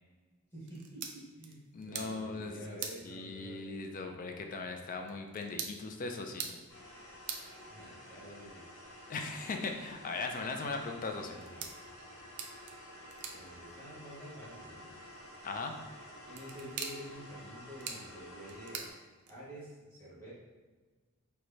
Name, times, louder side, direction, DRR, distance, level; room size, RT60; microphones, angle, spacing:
voice 1, 0.5-3.6 7.7-8.7 11.2-11.6 13.3-14.9 16.2-18.9 19.3-20.3, equal, 10° left, -10 dB, 1.5 m, -49 dB
sound 1, 0.6-19.7, right 6 dB, 80° right, 0.4 m, -48 dB
voice 2, 1.7-2.6 3.0-6.6 9.1-11.4 15.4-15.7, left 3 dB, 40° left, 4 dB, 0.3 m, -39 dB
sound 2, 6.7-18.9, left 1 dB, 65° left, 1.0 m, -51 dB
4.6 x 2.1 x 2.7 m, 1.3 s
head